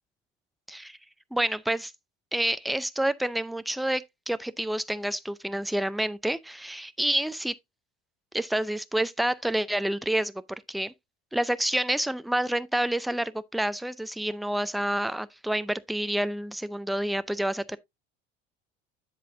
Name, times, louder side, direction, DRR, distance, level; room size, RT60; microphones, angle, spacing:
voice 1, 1.3-1.9 2.3-7.6 8.3-10.4 10.7-10.9 11.3-17.8, right 1 dB, ahead, 0.5 m, -28 dB
7.9 x 7.5 x 2.6 m
hypercardioid pair, 75°, 32 cm